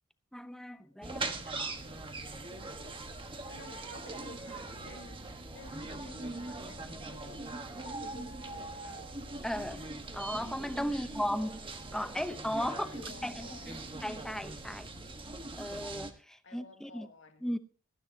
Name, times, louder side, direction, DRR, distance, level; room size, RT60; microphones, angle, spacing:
voice 1, 0.3-1.8 9.4-9.9 10.1-11.6 11.9-12.9 13.2-14.9 15.6-17.1 17.4-17.6, equal, 5° left, 0.8 m, -36 dB
voice 2, 0.9-1.5 3.5-9.1 10.9-11.1 12.7-13.9 16.4-17.5, left 3 dB, 65° left, 1.9 m, -53 dB
sound 1, 1.0-16.1, right 2 dB, 25° right, 1.3 m, -41 dB
19.0 x 13.0 x 2.8 m
head